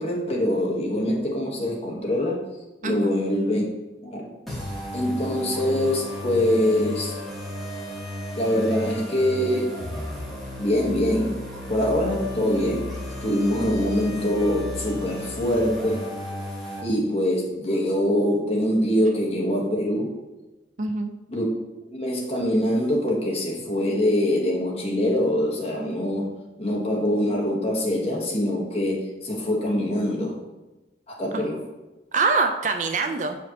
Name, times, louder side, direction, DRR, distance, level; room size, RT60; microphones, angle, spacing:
voice 1, 0.0-2.4 2.8-3.6 4.0-4.3 4.9-7.1 8.4-9.7 10.6-11.4 11.7-16.1 16.8-20.1 21.3-21.4 21.9-26.3 26.6-30.4 31.1-31.6, left 1 dB, 35° left, -2 dB, 1.2 m, -24 dB
voice 2, 2.8-3.1 20.8-21.1 31.3-31.4 32.1-33.4, right 4 dB, 45° right, 5 dB, 0.4 m, -24 dB
sound 1, 4.5-16.8, left 1 dB, ahead, 1.4 m, -34 dB
6.6 x 5.0 x 2.8 m, 1.1 s
head